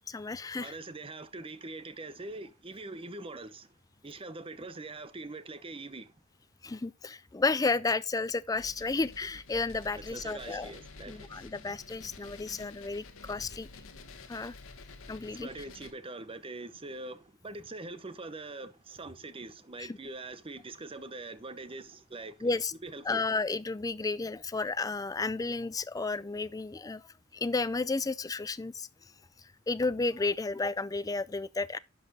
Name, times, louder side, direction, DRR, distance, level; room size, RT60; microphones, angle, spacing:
voice 1, 0.1-0.8 6.6-10.7 11.1-13.7 14.3-14.5 15.1-15.7 19.8-20.0 22.4-22.7 23.0-27.0 27.3-28.9 29.7-31.8, left 3 dB, 15° left, 0.4 m, -32 dB
voice 2, 0.6-3.7 4.0-6.1 9.9-11.3 15.3-22.3 22.8-23.2, right 2 dB, 25° right, 0.8 m, -43 dB
sound 1, 8.5-15.9, left 3 dB, 90° left, 1.3 m, -50 dB
11.0 x 5.9 x 4.1 m
head